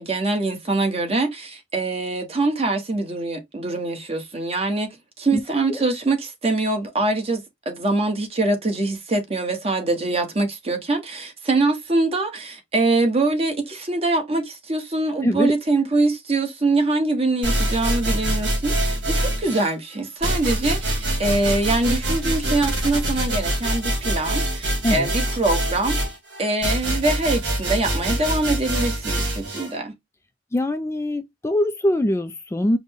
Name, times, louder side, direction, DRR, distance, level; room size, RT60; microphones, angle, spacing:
voice 1, 0.0-4.9 5.2-26.0 26.4-29.9, right 2 dB, 35° right, 1.1 m, -23 dB
voice 2, 15.2-15.5 24.8-25.1 30.5-32.8, left 1 dB, 15° left, 0.3 m, -22 dB
sound 1, 17.4-19.7 20.2-29.7, right 1 dB, 65° right, 1.9 m, -24 dB
5.0 x 2.1 x 3.4 m
head